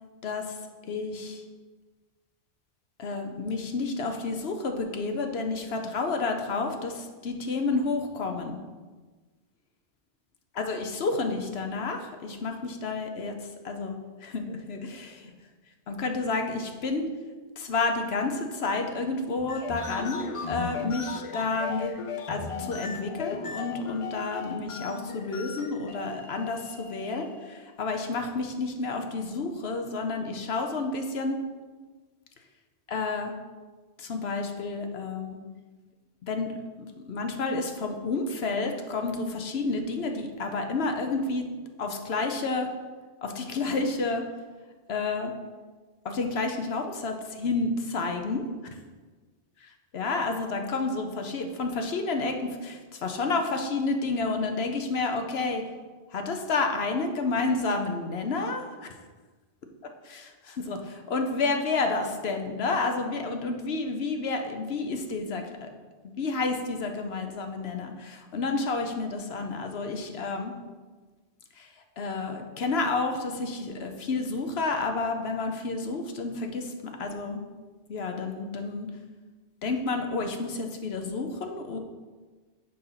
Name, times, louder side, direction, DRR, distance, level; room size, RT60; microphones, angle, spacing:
voice 1, 0.2-0.6 0.8-1.4 3.0-8.6 10.5-15.3 15.9-17.1 17.6-21.9 22.3-31.4 32.9-33.3 34.0-35.4 36.2-41.5 41.8-42.7 43.2-44.2 44.9-45.3 46.0-48.4 49.6-55.6 56.1-58.6 60.0-65.7 66.2-70.5 71.6-71.7 72.0-77.4 77.9-78.9 79.6-81.8, left 3 dB, 70° left, 5 dB, 1.1 m, -30 dB
sound 1, 19.4-27.6, left 6 dB, 45° left, 0.4 m, -37 dB
6.8 x 5.3 x 5.7 m, 1.4 s
omnidirectional pair, 1.1 m